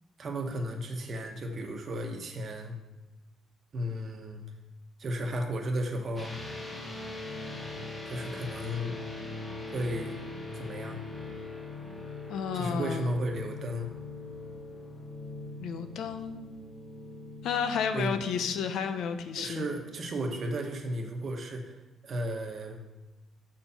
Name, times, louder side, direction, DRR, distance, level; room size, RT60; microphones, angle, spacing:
voice 1, 0.2-2.7 3.7-4.4 5.0-6.3 8.1-8.9 9.7-10.2 10.5-11.0 12.5-13.9 17.9-18.1 19.4-22.8, right 1 dB, 50° right, 3 dB, 1.0 m, -34 dB
sound 1, 6.2-20.3, left 2 dB, 25° left, 1.5 m, -42 dB
voice 2, 12.3-13.1 15.6-16.4 17.4-19.7, left 7 dB, 80° left, 8 dB, 0.5 m, -32 dB
6.2 x 4.3 x 5.5 m, 1.1 s
cardioid pair, 90°, 0 cm